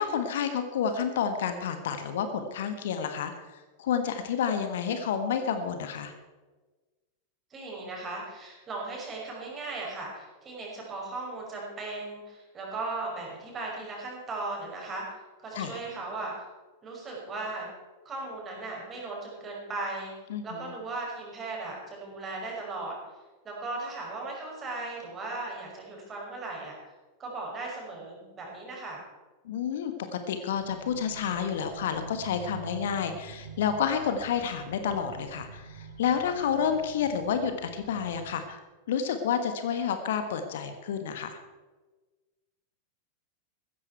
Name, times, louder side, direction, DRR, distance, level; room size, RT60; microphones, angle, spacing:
voice 1, 0.0-6.1 15.5-15.8 20.3-20.7 29.4-41.4, left 7 dB, 60° left, 8 dB, 1.3 m, -30 dB
voice 2, 7.5-15.0 15.4-16.3 16.8-17.7 18.1-20.1 20.4-23.0 23.4-26.8 27.2-29.0, right 3 dB, 25° right, -2 dB, 5.6 m, -37 dB
sound 1, 30.6-38.3, right 4 dB, 75° right, 1.8 m, -46 dB
15.5 x 14.0 x 4.6 m, 1.3 s
figure-of-eight pair, 90°, 0 cm